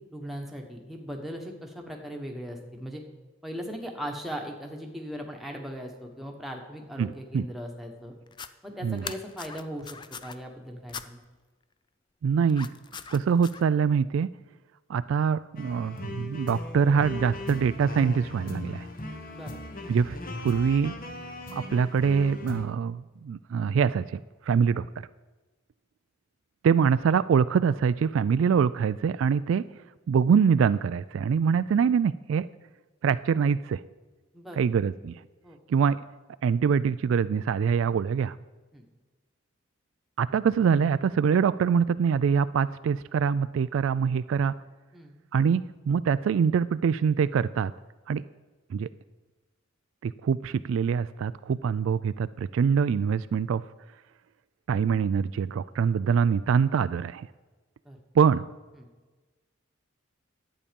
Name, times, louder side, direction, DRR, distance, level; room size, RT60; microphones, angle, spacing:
voice 1, 0.1-3.0 3.4-8.1 8.6-9.9 10.2-11.2 19.3-19.6 34.3-34.7 35.4-35.6 38.7-38.8 44.9-45.1 57.8-58.0 58.8-58.9, equal, ahead, 1 dB, 1.3 m, -38 dB
voice 2, 7.0-7.5 8.8-9.0 12.2-12.7 13.1-14.3 14.9-18.9 19.9-20.2 20.4-20.9 21.5-24.2 24.5-24.9 26.6-29.6 30.1-32.5 33.0-33.8 34.6-35.1 35.7-36.0 36.4-38.4 40.2-44.5 45.3-47.7 48.1-48.2 48.7-48.9 50.0-53.6 54.7-57.3 58.1-58.4, right 6 dB, 75° right, 15 dB, 0.3 m, -24 dB
sound 1, 8.3-8.5 9.0-10.4 10.9-11.1 12.5-13.6, left 6 dB, 25° left, 0.4 m, -40 dB
sound 2, 15.6-22.6, left 2 dB, 45° left, 1.1 m, -38 dB
11.0 x 8.6 x 5.3 m, 1.2 s
head